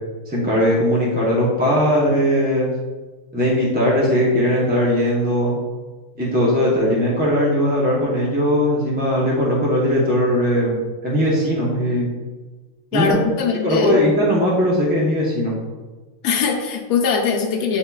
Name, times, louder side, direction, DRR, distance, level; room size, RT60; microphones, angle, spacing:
voice 1, 0.3-2.7 3.3-5.6 6.2-10.7 11.0-12.1 12.9-13.1 13.6-15.5, equal, 10° right, -6 dB, 0.5 m, -19 dB
voice 2, 12.9-14.0 16.2-17.8, left 5 dB, 85° left, 0 dB, 1.1 m, -21 dB
8.0 x 2.8 x 2.3 m, 1.3 s
omnidirectional pair, 1.5 m